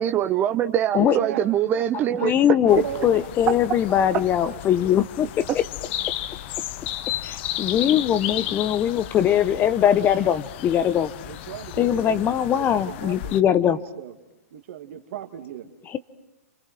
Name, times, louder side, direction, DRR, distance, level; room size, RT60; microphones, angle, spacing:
voice 1, 0.0-2.3, right 10 dB, 25° right, 0.8 m, -23 dB
voice 2, 1.0-1.4 1.7-2.3 2.7-3.3 4.8-4.9 10.2-10.4 11.2-12.2 12.5-14.1 14.5-15.7, right 10 dB, 55° right, 2.3 m, -36 dB
voice 3, 2.2-5.3 7.2-11.1 11.8-13.8 15.9-16.0, left 10 dB, 25° left, 1.0 m, -21 dB
sound 1, 2.7-13.4, left 13 dB, 45° left, 0.9 m, -34 dB
28.5 x 26.0 x 6.1 m
hypercardioid pair, 125°, 8 cm